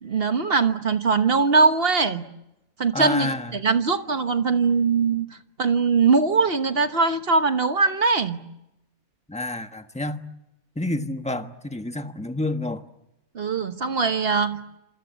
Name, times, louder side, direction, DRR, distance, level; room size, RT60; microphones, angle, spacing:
voice 1, 0.0-2.2 2.8-5.3 5.6-8.4 13.3-14.6, right 4 dB, 40° right, 9 dB, 1.4 m, -21 dB
voice 2, 2.9-3.5 9.3-10.2 10.8-12.8, left 2 dB, 5° left, 7 dB, 1.2 m, -29 dB
27.0 x 25.5 x 8.3 m, 0.91 s
omnidirectional pair, 1.7 m